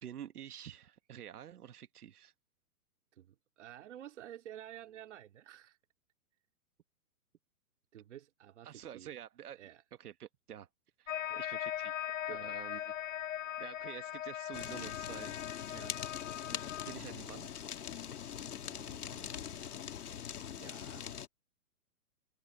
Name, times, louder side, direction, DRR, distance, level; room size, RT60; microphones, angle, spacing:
voice 1, 0.0-2.3 8.6-9.6 10.0-10.7 11.0-12.9 13.6-15.3 16.4-17.5, right 10 dB, 85° right, 1.6 m, -49 dB
voice 2, 3.1-5.8 7.9-9.1 9.5-9.8 11.3-11.5 12.3-12.6 15.7-16.0 18.6-21.0, right 11 dB, 50° right, 2.6 m, -52 dB
sound 1, 11.1-17.0, left 11 dB, 60° left, 0.8 m, -40 dB
Fire, 14.5-21.3, left 9 dB, 85° left, 2.7 m, -43 dB
hypercardioid pair, 170°, 44 cm